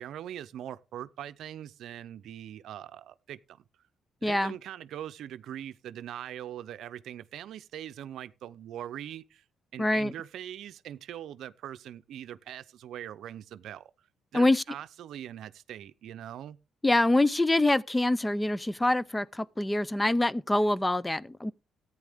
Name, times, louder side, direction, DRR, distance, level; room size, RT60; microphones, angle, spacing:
voice 1, 0.0-3.6 4.2-9.4 9.7-14.1 14.3-16.6, right 11 dB, 75° right, 0.6 m, -42 dB
voice 2, 4.2-4.5 9.8-10.1 14.3-14.6 16.8-21.5, left 1 dB, 15° left, 0.5 m, -25 dB
14.0 x 9.2 x 3.6 m
cardioid pair, 90°, 0 cm